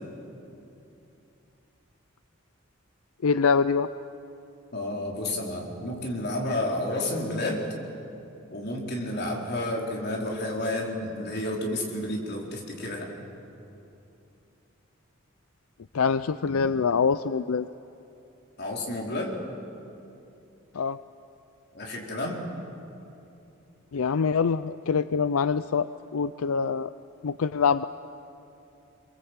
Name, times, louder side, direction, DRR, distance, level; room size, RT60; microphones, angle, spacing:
voice 1, 3.2-3.9 15.9-17.7 20.7-21.0 23.9-26.9 27.2-27.8, left 5 dB, 85° left, 13 dB, 0.5 m, -24 dB
voice 2, 4.7-7.7 8.5-13.1 18.6-19.4 21.7-22.5, left 1 dB, 50° left, -1 dB, 4.1 m, -31 dB
26.5 x 22.5 x 8.2 m, 2.8 s
head